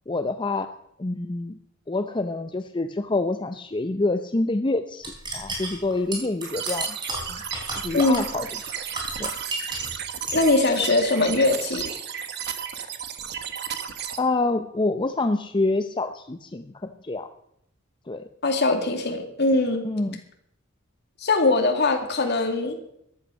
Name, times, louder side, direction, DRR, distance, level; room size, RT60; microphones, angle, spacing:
voice 1, 0.1-0.7 1.0-1.6 1.9-7.0 7.3-7.4 7.8-8.5 9.2-9.3 14.2-17.3 18.1-18.3 19.8-20.2, left 2 dB, 25° left, 8 dB, 0.6 m, -27 dB
sound 1, 5.0-10.0 10.3-10.8, right 2 dB, 20° right, 4.0 m, -33 dB
sound 2, 6.4-14.2, right 8 dB, 55° right, 1.3 m, -34 dB
voice 2, 10.3-11.8 18.4-19.8 21.2-22.8, left 2 dB, 55° left, 4 dB, 2.4 m, -21 dB
14.0 x 11.5 x 6.3 m, 0.73 s
head